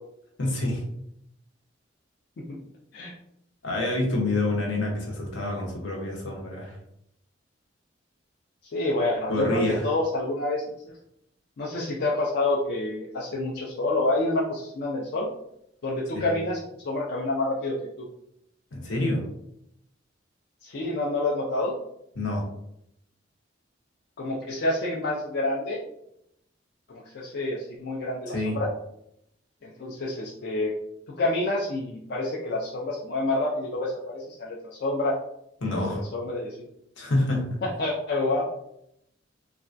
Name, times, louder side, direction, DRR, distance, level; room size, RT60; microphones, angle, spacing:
voice 1, 0.4-0.9 3.6-6.8 9.3-9.8 16.1-16.3 18.7-19.3 22.2-22.4 28.3-28.6 35.6-36.0 37.0-37.6, left 2 dB, 80° left, -1 dB, 0.9 m, -27 dB
voice 2, 8.7-10.6 11.6-15.3 15.8-18.1 20.6-21.8 24.2-25.8 26.9-28.7 29.6-30.7 31.1-35.2 35.6-36.6 37.6-38.5, left 2 dB, 60° left, -3 dB, 0.4 m, -28 dB
3.3 x 2.2 x 2.5 m, 0.77 s
head